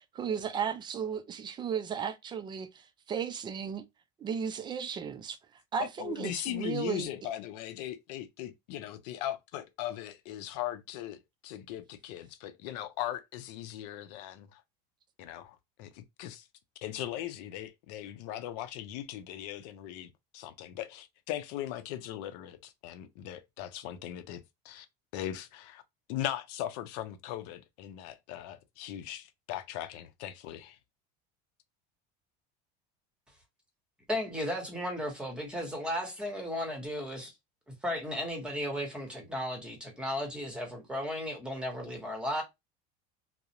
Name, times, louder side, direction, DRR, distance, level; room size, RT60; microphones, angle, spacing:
voice 1, 0.2-3.8 4.2-5.4 5.7-7.1, right 7 dB, 20° right, 0.3 m, -35 dB
voice 2, 5.8-14.6 15.2-16.5 16.8-24.9 25.1-25.8 26.1-30.8, left 12 dB, 80° left, 0.5 m, -39 dB
voice 3, 34.1-37.3 37.8-42.4, left 1 dB, 5° right, 1.0 m, -35 dB
2.4 x 2.0 x 2.8 m
supercardioid pair, 125°, 20 cm